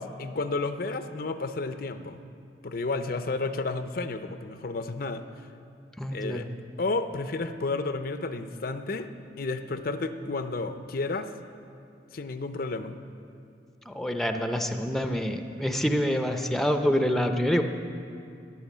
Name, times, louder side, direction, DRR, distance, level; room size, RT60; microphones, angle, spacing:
voice 1, 0.0-2.2 2.6-5.2 6.1-6.5 6.8-9.1 9.4-11.3 12.1-13.0, left 3 dB, 55° left, 9 dB, 0.6 m, -31 dB
voice 2, 6.0-6.5 13.9-17.6, equal, ahead, 6 dB, 0.6 m, -26 dB
14.5 x 10.0 x 7.3 m, 2.5 s
head